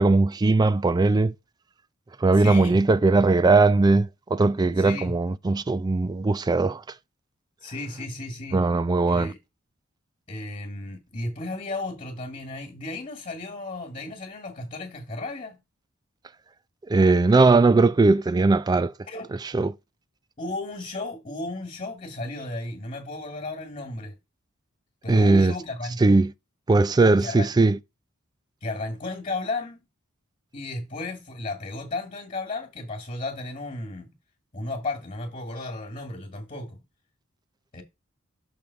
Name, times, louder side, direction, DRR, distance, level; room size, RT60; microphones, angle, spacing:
voice 1, 0.0-1.3 2.2-6.8 8.5-9.3 16.9-18.9 19.5-19.7 25.1-25.5 26.0-26.3 26.7-27.8, right 3 dB, 20° right, 0.3 m, -19 dB
voice 2, 2.4-2.8 4.8-5.2 7.6-8.7 9.1-9.4 10.3-15.6 19.1-19.4 20.4-24.2 25.0-26.0 27.2-27.5 28.6-29.8 30.5-34.1 34.5-36.8 37.7-37.8, left 2 dB, 35° left, 1.7 m, -34 dB
6.3 x 3.6 x 5.7 m
head